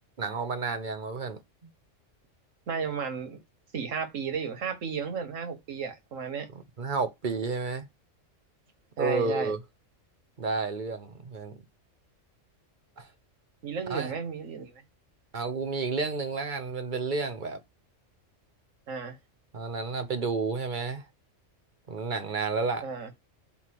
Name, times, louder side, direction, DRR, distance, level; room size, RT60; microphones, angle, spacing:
voice 1, 0.2-1.7 6.5-7.9 9.0-9.6 10.4-11.6 13.0-13.1 13.9-14.1 15.3-17.6 19.5-21.0 21.9-22.8, right 4 dB, 40° right, 1.1 m, -31 dB
voice 2, 2.7-3.4 3.7-6.5 9.0-9.5 13.6-14.8 18.9-19.2 22.8-23.1, right 6 dB, 90° right, 1.7 m, -33 dB
8.0 x 2.8 x 5.9 m
omnidirectional pair, 1.3 m